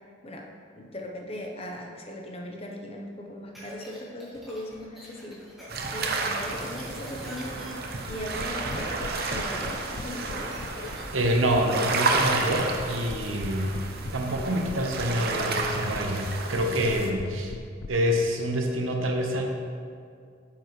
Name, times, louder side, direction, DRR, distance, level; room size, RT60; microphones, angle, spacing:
voice 1, 0.8-5.4 5.9-10.5, left 1 dB, 30° left, 1 dB, 0.9 m, -38 dB
sound 1, 3.6-12.6, equal, ahead, 1.9 m, -45 dB
sound 2, 5.7-17.1, right 3 dB, 50° right, 0.7 m, -31 dB
sound 3, 8.1-17.9, left 4 dB, 65° left, 0.4 m, -40 dB
voice 2, 10.9-13.7 14.1-17.5 17.9-19.5, equal, 85° right, 2 dB, 1.0 m, -26 dB
9.0 x 7.2 x 3.2 m, 2.2 s
head